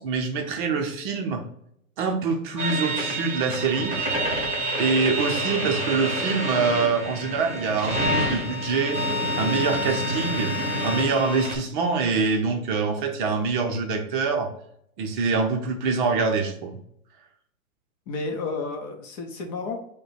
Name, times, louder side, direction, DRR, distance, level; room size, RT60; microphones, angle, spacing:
voice 1, 0.0-1.4 2.0-3.9 4.8-9.0 9.4-10.5 10.8-14.5 15.0-16.8, right 4 dB, 35° right, 3 dB, 0.7 m, -25 dB
sound 1, 2.6-11.6, equal, 15° right, 1.4 m, -27 dB
voice 2, 18.1-19.8, left 3 dB, 30° left, 3 dB, 0.7 m, -31 dB
5.1 x 2.2 x 4.1 m, 0.71 s
hypercardioid pair, 125°, 43 cm